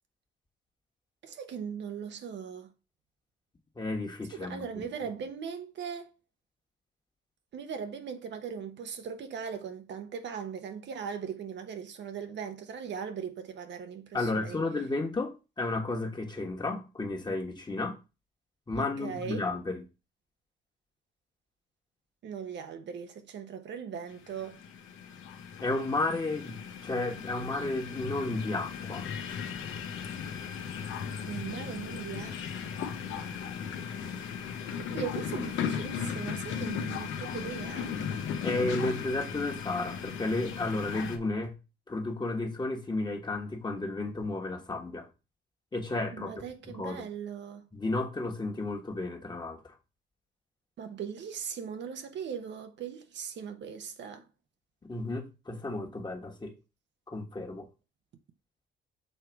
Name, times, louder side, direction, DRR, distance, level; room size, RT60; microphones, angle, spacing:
voice 1, 1.2-2.7 4.3-6.1 7.5-14.6 18.8-19.5 22.2-24.6 31.2-32.4 32.8-32.9 33.2-33.4 34.8-37.9 46.1-47.7 50.8-54.3, right 7 dB, 65° right, 0.9 m, -39 dB
voice 2, 3.8-4.8 14.1-18.0 18.7-19.8 25.6-29.1 38.4-41.6 41.9-45.1 45.7-46.3 46.6-47.1 47.7-49.7 54.8-56.5 57.1-57.7, left 2 dB, 20° left, 1.4 m, -33 dB
sound 1, 24.1-41.2, left 7 dB, 80° left, 0.9 m, -37 dB
6.5 x 3.2 x 4.6 m
cardioid pair, 90°, 20 cm